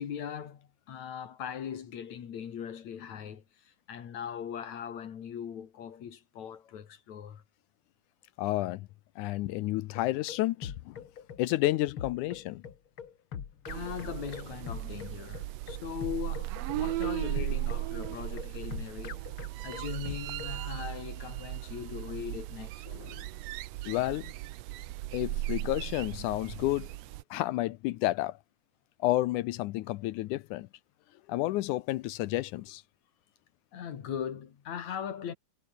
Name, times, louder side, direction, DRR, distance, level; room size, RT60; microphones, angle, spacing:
voice 1, 0.0-7.4 13.7-19.2 19.6-22.9 33.7-35.3, left 8 dB, 60° left, 3.2 m, -40 dB
voice 2, 8.4-8.9 9.2-11.0 11.4-12.6 22.9-23.3 23.9-24.3 25.1-26.9 27.3-28.4 29.0-30.7 31.3-32.8, left 17 dB, 80° left, 2.1 m, -31 dB
sound 1, 9.9-20.6, left 8 dB, 45° left, 2.3 m, -43 dB
sound 2, 13.7-27.2, right 17 dB, 85° right, 1.5 m, -37 dB
omnidirectional pair, 3.7 m